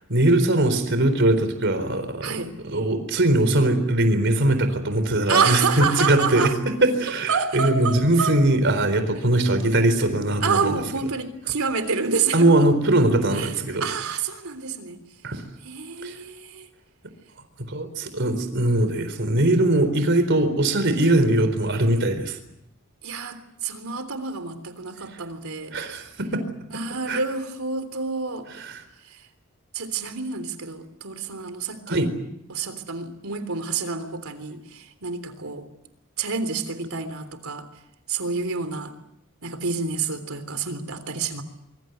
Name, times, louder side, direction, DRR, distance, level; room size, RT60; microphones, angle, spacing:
voice 1, 0.1-10.8 12.3-13.8 15.2-15.4 16.0-16.2 17.7-22.4 25.7-26.4 27.1-27.2 28.5-28.8 31.9-32.1, right 1 dB, 60° right, 9 dB, 4.2 m, -21 dB
voice 2, 2.2-2.5 5.3-6.5 7.3-8.3 10.4-12.7 13.4-13.5 13.8-15.0 15.6-16.7 23.0-25.7 26.7-28.5 29.7-32.0 32.5-35.7 36.2-37.7 38.1-38.9 39.4-41.4, right 5 dB, 85° right, 10 dB, 3.5 m, -28 dB
25.0 x 24.0 x 8.1 m, 0.79 s
head